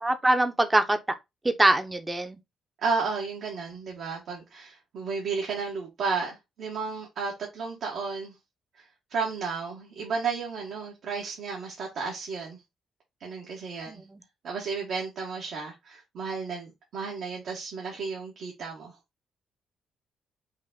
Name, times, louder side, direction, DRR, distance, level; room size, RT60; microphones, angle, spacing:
voice 1, 0.0-1.0 1.4-2.4 13.9-14.2, right 1 dB, 15° right, 0.8 m, -23 dB
voice 2, 2.8-8.3 8.7-8.8 9.1-12.6 13.2-14.0 14.4-18.9, right 5 dB, 70° right, 1.7 m, -33 dB
5.4 x 2.5 x 3.9 m
cardioid pair, 90°, 0 cm